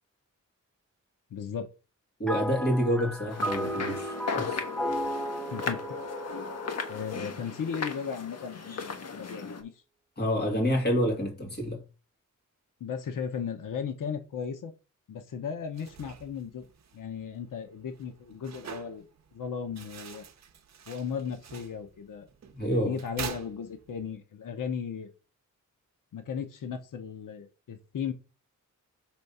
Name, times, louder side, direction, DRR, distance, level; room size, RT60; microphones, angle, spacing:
voice 1, 1.3-1.7 5.5-6.0 6.9-9.8 12.8-14.7 15.1-16.6 16.9-19.1 19.3-20.3 20.9-22.3 22.7-25.1 26.1-28.1, left 7 dB, 85° left, 0.8 m, -36 dB
voice 2, 2.2-4.6 10.2-11.8 22.5-22.9, equal, 30° left, 2.3 m, -28 dB
sound 1, 2.3-7.8, equal, 5° left, 0.7 m, -35 dB
sound 2, 3.3-9.6, left 5 dB, 55° left, 1.2 m, -36 dB
sound 3, 15.6-24.2, right 7 dB, 60° right, 0.7 m, -46 dB
6.2 x 3.5 x 5.4 m
wide cardioid pair, 175°, 31 cm